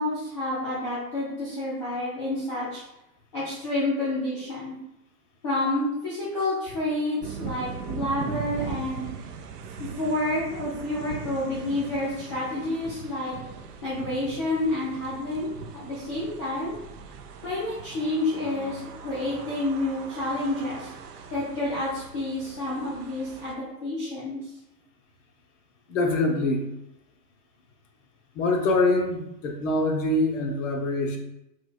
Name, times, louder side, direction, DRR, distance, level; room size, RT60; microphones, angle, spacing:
voice 1, 0.0-2.8 3.3-4.8 5.4-9.1 9.8-13.4 13.8-16.7 17.4-20.9 21.3-24.5, left 2 dB, 20° left, -8 dB, 0.3 m, -29 dB
sound 1, 7.2-23.6, right 6 dB, 70° right, 0.6 m, -40 dB
voice 2, 25.9-26.7 28.3-31.2, left 2 dB, 50° left, 3 dB, 0.7 m, -24 dB
4.6 x 2.2 x 2.2 m, 0.88 s
hypercardioid pair, 115°, 50 cm